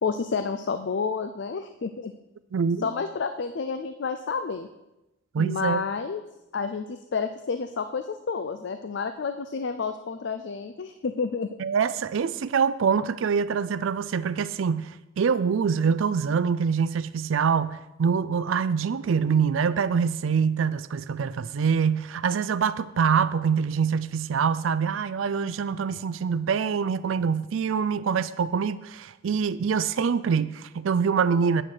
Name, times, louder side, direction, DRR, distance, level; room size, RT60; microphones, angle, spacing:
voice 1, 0.0-2.1 2.8-4.7 5.4-6.2 6.5-11.6, left 5 dB, 60° left, 0.4 m, -30 dB
voice 2, 2.5-2.9 5.3-5.8 11.6-31.6, right 6 dB, 75° right, 0.4 m, -25 dB
8.9 x 6.1 x 6.6 m
head